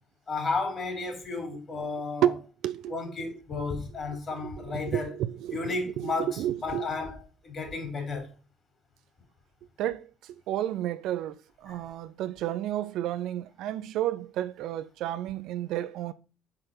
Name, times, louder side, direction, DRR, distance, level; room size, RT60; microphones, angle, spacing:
voice 1, 0.3-2.3 2.9-5.1 5.5-7.2 7.4-8.3 11.7-11.8, left 3 dB, 40° left, 3.9 m, -33 dB
voice 2, 4.7-6.9 9.8-16.1, right 12 dB, 60° right, 0.5 m, -31 dB
9.7 x 4.4 x 5.7 m
figure-of-eight pair, 50°, 0 cm